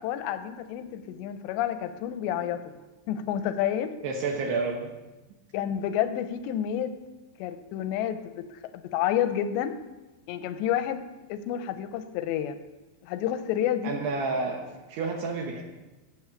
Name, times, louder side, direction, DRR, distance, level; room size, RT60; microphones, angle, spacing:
voice 1, 0.0-2.7 3.1-3.9 5.5-6.9 7.4-9.8 10.3-11.0 11.3-12.6 13.0-14.0, left 10 dB, 85° left, 10 dB, 2.8 m, -29 dB
voice 2, 4.0-4.9 13.8-14.6 14.9-15.6, right 3 dB, 70° right, 2 dB, 3.1 m, -29 dB
14.5 x 8.5 x 7.2 m, 1.1 s
omnidirectional pair, 5.4 m